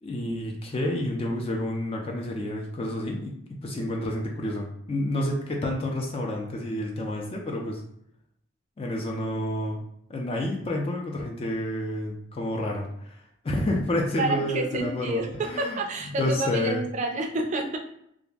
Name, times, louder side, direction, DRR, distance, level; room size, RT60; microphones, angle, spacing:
voice 1, 0.0-7.8 8.8-9.8 10.1-15.8 16.2-16.8, left 1 dB, 30° left, 0 dB, 0.3 m, -29 dB
voice 2, 14.2-17.8, right 2 dB, 40° right, 3 dB, 0.4 m, -29 dB
2.4 x 2.0 x 3.4 m, 0.74 s
head